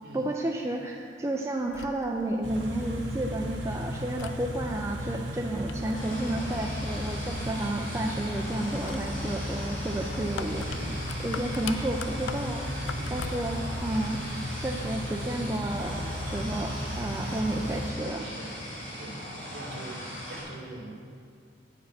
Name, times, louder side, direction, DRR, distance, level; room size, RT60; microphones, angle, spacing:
voice 1, 0.1-10.8 11.2-14.2 14.6-16.7 17.0-18.3, right 1 dB, 15° right, 1 dB, 0.4 m, -31 dB
sound 1, 1.6-13.7, left 6 dB, 85° left, 0.4 m, -45 dB
Car / Idling, 2.4-17.9, equal, 80° right, 1.5 m, -35 dB
sound 2, 5.9-20.4, equal, 45° left, 2.5 m, -39 dB
voice 2, 10.7-11.0 12.9-13.2 18.2-18.6 19.0-20.9, right 2 dB, 55° right, -4 dB, 2.0 m, -43 dB
9.2 x 5.1 x 5.8 m, 2.2 s
head